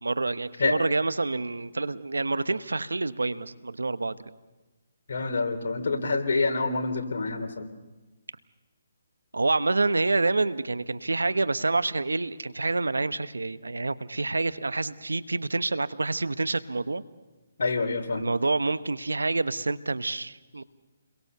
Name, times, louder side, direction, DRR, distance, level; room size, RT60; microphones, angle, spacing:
voice 1, 0.0-4.2 9.3-17.0 18.2-20.6, right 3 dB, 90° right, 13 dB, 1.1 m, -27 dB
voice 2, 5.1-7.7 17.6-18.3, left 3 dB, 65° left, 5 dB, 3.3 m, -27 dB
30.0 x 22.5 x 6.9 m, 1.2 s
figure-of-eight pair, 145°, 0 cm